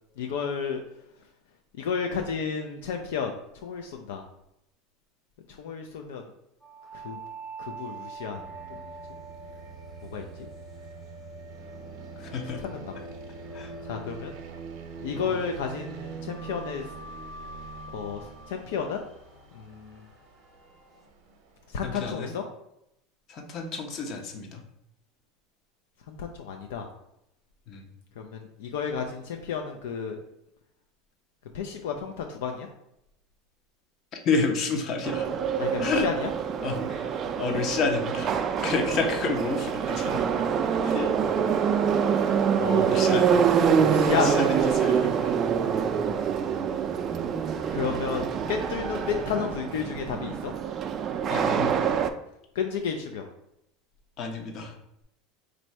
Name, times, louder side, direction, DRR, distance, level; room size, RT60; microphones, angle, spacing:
voice 1, 0.2-0.8 1.8-3.3 3.6-4.2 5.6-6.3 6.9-7.2 7.6-8.4 8.7-8.9 10.1-10.2 12.6-12.9 13.8-14.3 15.0-16.9 17.9-19.0 19.5-20.0 21.7-22.4 26.1-26.9 28.2-30.2 31.5-32.7 35.6-36.3 42.6-42.9 43.8-44.3 47.7-50.5 52.6-53.2, left 6 dB, 80° left, 4 dB, 0.4 m, -32 dB
sound 1, 6.6-15.4 16.3-21.1, right 2 dB, 10° left, 0.8 m, -46 dB
sound 2, 8.3-21.8, right 5 dB, 65° right, 0.7 m, -44 dB
voice 2, 12.2-12.7 13.5-13.7 15.1-15.4 21.8-22.3 23.3-24.6 27.7-27.9 34.2-35.3 35.8-36.1 36.6-38.3 38.6-40.3 40.8-41.1 42.3-42.4 42.9-43.8 44.1-45.4 51.3-52.0 54.2-54.7, left 4 dB, 45° left, 3 dB, 0.8 m, -30 dB
Subway metro underground, 35.0-52.1, right 7 dB, 35° right, 0.3 m, -25 dB
3.2 x 2.6 x 4.5 m, 0.80 s
supercardioid pair, 115°, 0 cm